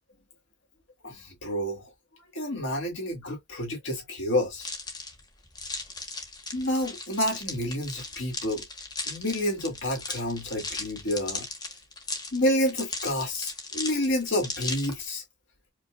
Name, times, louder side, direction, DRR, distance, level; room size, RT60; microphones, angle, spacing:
voice 1, 1.0-1.9 2.3-4.7 6.5-8.7 9.1-11.5 12.3-15.2, left 1 dB, 80° left, 1.8 m, -29 dB
sound 1, 4.6-15.1, left 3 dB, 20° left, 1.2 m, -37 dB
5.1 x 2.4 x 2.3 m
head